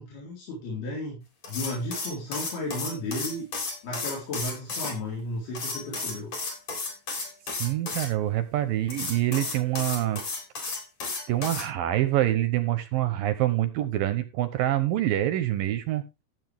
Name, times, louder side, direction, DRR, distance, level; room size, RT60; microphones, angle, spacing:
voice 1, 0.0-3.4 3.8-6.3, left 1 dB, 65° left, -4 dB, 6.0 m, -34 dB
sound 1, 1.4-4.9 5.5-8.1 8.9-11.7, left 3 dB, 40° left, 4.6 m, -33 dB
voice 2, 7.6-10.2 11.3-16.1, right 14 dB, 75° right, 11 dB, 2.3 m, -26 dB
15.0 x 8.1 x 3.5 m, 0.26 s
omnidirectional pair, 4.7 m